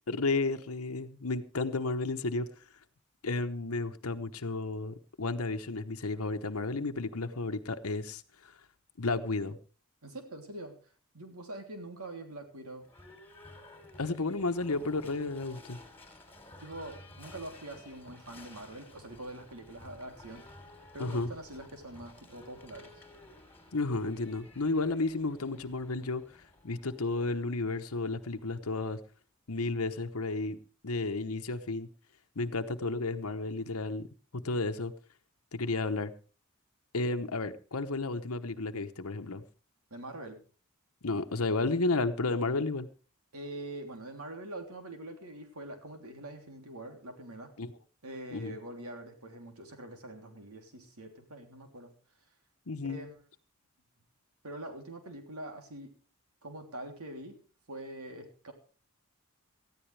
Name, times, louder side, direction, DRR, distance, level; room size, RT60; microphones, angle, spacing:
voice 1, 0.1-2.5 3.2-8.5 9.0-9.6 14.0-15.8 21.0-21.3 23.7-26.4 26.6-29.0 29.5-30.6 30.8-31.9 32.4-34.1 34.3-34.9 35.5-36.1 36.9-39.4 41.0-42.9 47.6-47.7 48.3-48.6 52.7-53.0, left 3 dB, 85° left, 1.0 m, -32 dB
voice 2, 10.0-10.7 11.1-12.8 16.6-20.4 20.9-22.9 39.9-40.4 43.3-47.5 48.0-51.9 52.9-53.2 54.4-55.9 56.4-57.4 57.7-58.5, right 1 dB, 90° right, 3.2 m, -44 dB
Livestock farm animals working animals / Bell, 12.8-28.7, left 2 dB, 10° left, 3.2 m, -54 dB
19.0 x 14.0 x 3.3 m
head